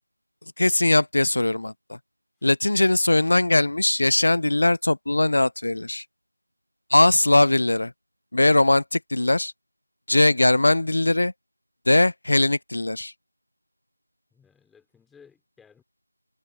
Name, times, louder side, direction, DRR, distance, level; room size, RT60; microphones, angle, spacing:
voice 1, 0.6-2.0 2.4-6.0 6.9-7.9 8.3-9.5 10.1-11.3 11.9-13.1, left 2 dB, 50° left, 0.3 m, -20 dB
voice 2, 14.3-15.8, left 6 dB, ahead, 3.1 m, -56 dB
figure-of-eight pair, 170°, 0 cm